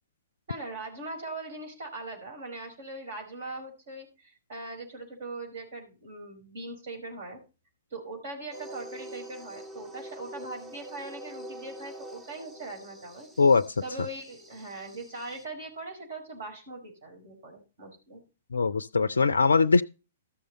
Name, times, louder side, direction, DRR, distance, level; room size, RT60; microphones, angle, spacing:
voice 1, 0.5-7.4 7.9-13.3 13.8-18.2, right 2 dB, 55° right, 5.2 m, -40 dB
sound 1, 8.5-15.4, right 1 dB, 10° right, 1.2 m, -46 dB
voice 2, 18.5-19.8, left 4 dB, 70° left, 0.4 m, -21 dB
13.5 x 6.6 x 4.2 m
figure-of-eight pair, 110°, 0 cm